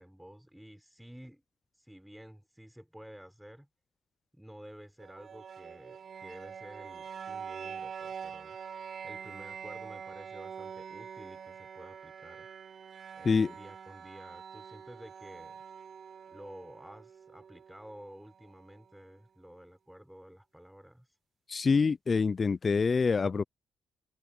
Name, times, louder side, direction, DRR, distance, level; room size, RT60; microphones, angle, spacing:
voice 1, 0.0-1.4 1.7-3.7 4.3-8.6 9.0-12.5 13.1-15.6 16.3-21.2, equal, 5° right, 6.2 m, -51 dB
sound 1, 5.0-18.9, right 7 dB, 50° right, 7.6 m, -45 dB
voice 2, 21.5-23.4, left 5 dB, 35° left, 0.4 m, -26 dB
open air
cardioid pair, 80°, 0 cm